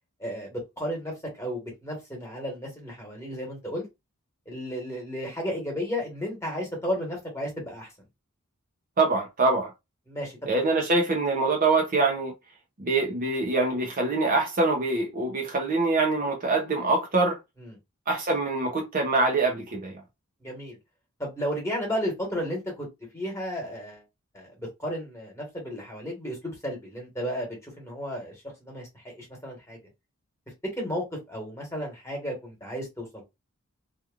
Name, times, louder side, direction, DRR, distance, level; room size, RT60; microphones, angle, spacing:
voice 1, 0.2-3.9 4.5-7.9 10.1-10.5 17.6-17.8 20.4-20.8 21.2-22.9 23.1-24.0 24.3-28.3 28.6-29.8 30.6-33.2, equal, 15° left, 1.4 m, -33 dB
voice 2, 9.0-9.7 10.5-12.3 12.8-17.4 18.1-19.9, right 3 dB, 40° right, 0.6 m, -24 dB
2.8 x 2.5 x 2.4 m
head